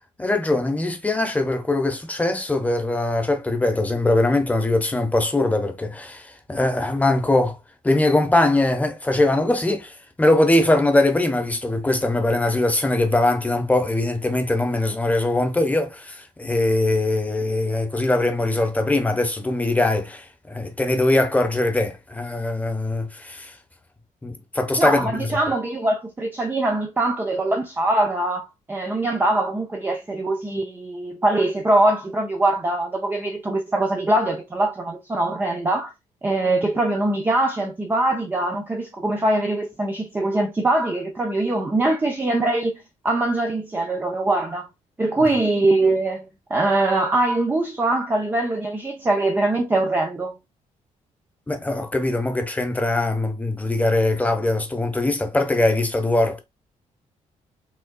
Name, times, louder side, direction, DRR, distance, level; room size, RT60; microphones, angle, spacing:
voice 1, 0.2-7.6 7.8-23.6 24.2-25.4 45.2-45.3 51.5-56.4, left 2 dB, 10° left, 0.9 m, -21 dB
voice 2, 24.8-35.9 36.2-44.7 45.0-50.3, right 2 dB, 15° right, 0.6 m, -22 dB
5.3 x 3.6 x 2.2 m
cardioid pair, 165°, 13 cm